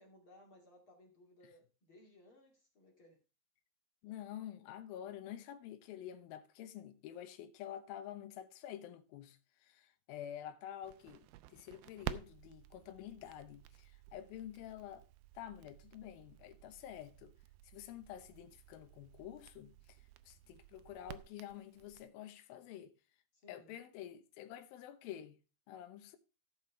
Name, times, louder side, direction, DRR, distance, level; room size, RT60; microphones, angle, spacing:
voice 1, 0.0-3.2 23.3-23.7, left 1 dB, 40° left, 2.5 m, -62 dB
voice 2, 4.0-15.0 15.4-17.3 17.7-20.0 20.3-23.0 23.5-25.4 25.7-26.2, left 11 dB, 70° left, 2.6 m, -49 dB
Crackle, 10.8-22.0, right 14 dB, 80° right, 2.3 m, -52 dB
14.0 x 5.4 x 4.5 m
omnidirectional pair, 4.8 m